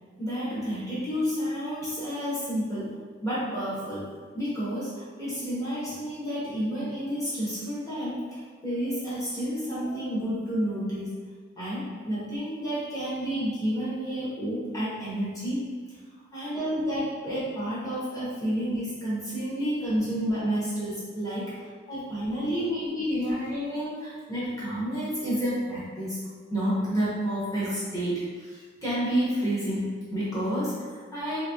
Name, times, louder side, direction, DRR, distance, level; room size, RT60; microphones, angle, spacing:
voice 1, 0.2-11.2 11.6-15.6 16.3-26.2 26.5-31.4, equal, 15° left, -10 dB, 1.1 m, -30 dB
3.5 x 3.4 x 2.9 m, 1.5 s
head